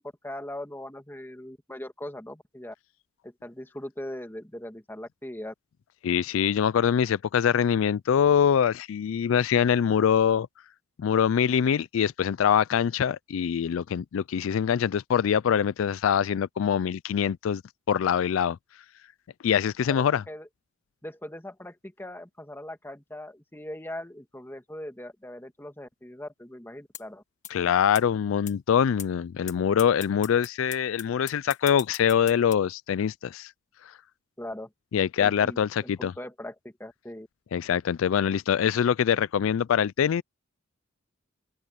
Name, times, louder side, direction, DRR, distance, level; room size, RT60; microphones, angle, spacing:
voice 1, 0.0-2.7 3.2-5.5 19.9-20.5 21.0-27.2 34.4-34.7 35.2-37.3, left 1 dB, 10° left, 2.1 m, -40 dB
voice 2, 6.0-10.5 11.0-17.6 17.9-18.6 19.4-20.2 27.5-33.5 34.9-36.1 37.5-40.2, left 8 dB, 75° left, 0.3 m, -24 dB
sound 1, 26.9-27.0 27.4-27.5 27.9-28.0 28.5-28.6 29.0-29.1 29.5-29.6 29.8-32.5, left 10 dB, 40° left, 1.4 m, -38 dB
open air
head